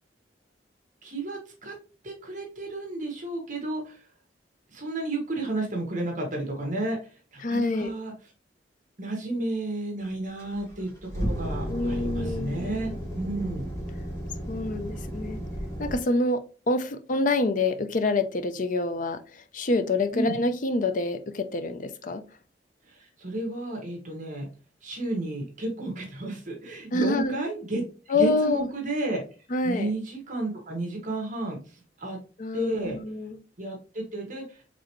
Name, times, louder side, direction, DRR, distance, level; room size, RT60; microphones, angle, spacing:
voice 1, 1.0-1.7 2.0-4.1 4.7-8.1 9.0-13.7 20.1-20.4 22.9-24.5 24.8-29.2 29.6-32.2 32.5-33.0 33.6-34.6, right 2 dB, 45° right, 1 dB, 1.4 m, -32 dB
voice 2, 7.4-7.9 11.7-12.7 14.5-15.4 15.8-22.3 26.9-27.4 28.1-28.7 29.5-29.9 32.4-33.4, left 2 dB, 45° left, 9 dB, 0.5 m, -27 dB
sound 1, 10.4-15.9, equal, 15° left, 1.8 m, -33 dB
4.9 x 3.5 x 3.0 m, 0.36 s
head